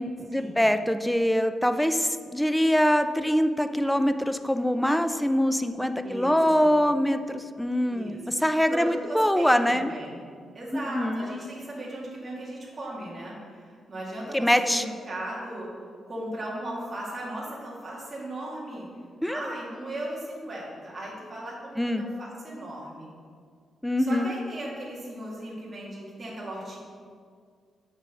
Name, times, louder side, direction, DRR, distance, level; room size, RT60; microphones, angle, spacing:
voice 1, 0.0-9.9 10.9-11.4 14.3-14.8 19.2-19.5 21.8-22.0 23.8-24.3, equal, 5° left, 9 dB, 0.3 m, -24 dB
voice 2, 6.0-6.8 7.9-8.2 8.7-10.2 10.5-15.7 16.1-18.9 19.3-23.1 24.1-26.8, right 1 dB, 25° right, -5 dB, 1.8 m, -37 dB
6.1 x 6.1 x 5.8 m, 2.1 s
wide cardioid pair, 165°, 0 cm